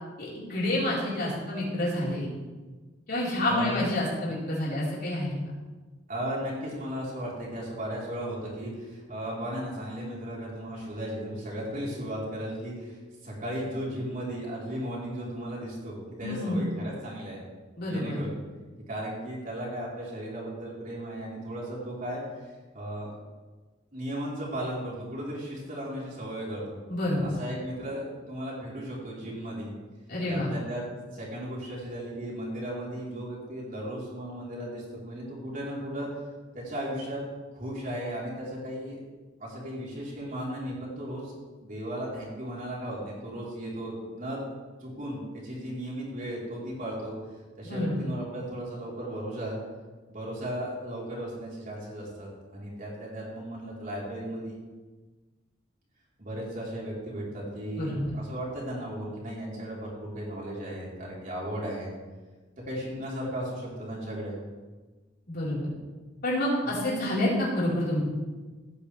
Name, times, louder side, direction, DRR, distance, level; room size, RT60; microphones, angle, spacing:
voice 1, 0.2-2.3 3.1-5.3 16.2-16.7 17.8-18.2 26.9-27.2 30.1-30.5 47.6-48.1 57.8-58.0 65.3-65.7 66.2-68.0, left 1 dB, 55° left, -7 dB, 4.6 m, -28 dB
voice 2, 3.5-3.9 6.1-17.4 17.8-18.4 18.9-23.1 23.9-26.6 27.4-29.7 30.3-30.9 31.1-36.1 36.5-37.2 37.5-39.0 39.4-41.3 41.6-44.4 44.8-47.1 47.6-49.5 50.1-54.6 56.2-61.9 62.7-64.4 66.6-66.8, right 1 dB, 45° right, -5 dB, 4.2 m, -36 dB
17.0 x 9.2 x 3.5 m, 1.3 s
head